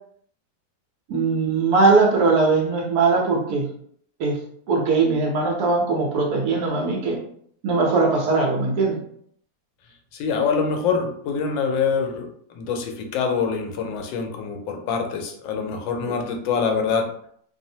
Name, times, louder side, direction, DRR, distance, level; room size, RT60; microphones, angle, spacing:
voice 1, 1.1-3.7 4.2-4.4 4.7-7.2 7.6-9.0, right 3 dB, 65° right, 0 dB, 1.0 m, -20 dB
voice 2, 10.1-12.3 12.6-17.1, left 5 dB, 85° left, 3 dB, 1.3 m, -25 dB
3.2 x 2.0 x 2.7 m, 0.64 s
omnidirectional pair, 2.0 m